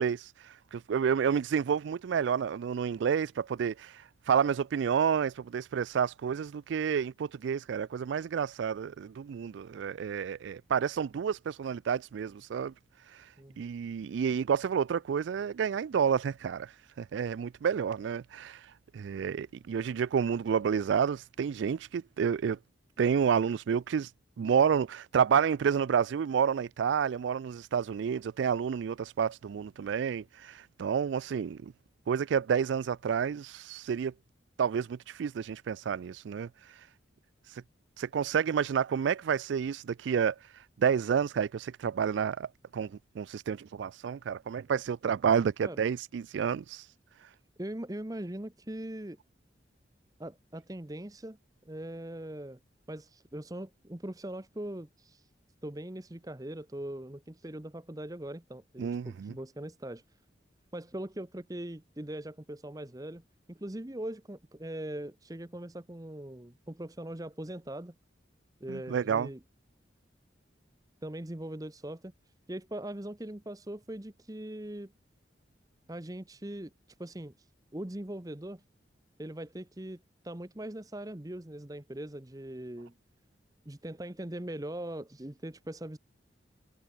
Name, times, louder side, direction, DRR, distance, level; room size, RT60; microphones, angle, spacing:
voice 1, 0.0-12.7 13.0-22.6 23.0-24.1 24.4-31.7 32.1-34.1 34.6-36.9 37.4-37.6 38.0-46.9 47.2-47.3 58.8-59.3 68.7-69.3, right 7 dB, 75° right, 0.3 m, -30 dB
voice 2, 13.4-13.7 45.6-45.8 47.6-49.2 50.2-51.4 51.6-52.6 52.9-55.3 55.6-60.0 60.7-63.2 63.5-67.9 68.6-69.4 71.0-72.1 72.5-74.9 75.9-76.7 77.0-77.3 77.7-78.6 79.2-82.9 83.7-86.0, right 1 dB, 20° right, 0.9 m, -41 dB
head